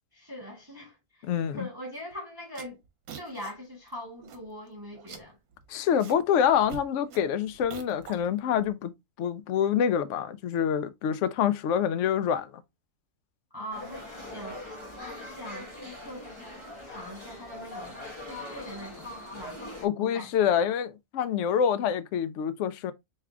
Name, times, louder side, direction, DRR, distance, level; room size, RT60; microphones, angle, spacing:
voice 1, 0.1-1.3 1.5-2.8 3.2-5.4 13.5-14.8 15.0-16.5 16.8-19.6 20.0-20.3, equal, 15° right, 1.1 m, -42 dB
voice 2, 1.2-1.7 5.7-8.9 9.2-12.6 19.8-22.9, left 8 dB, 70° left, 0.7 m, -26 dB
sound 1, 2.0-2.1 2.4-3.5 3.9-4.0 4.2-4.7 4.9-6.2 6.5-8.7, right 6 dB, 70° right, 1.3 m, -45 dB
sound 2, 13.7-19.9, left 1 dB, 20° left, 1.0 m, -42 dB
3.5 x 3.2 x 3.5 m
omnidirectional pair, 1.7 m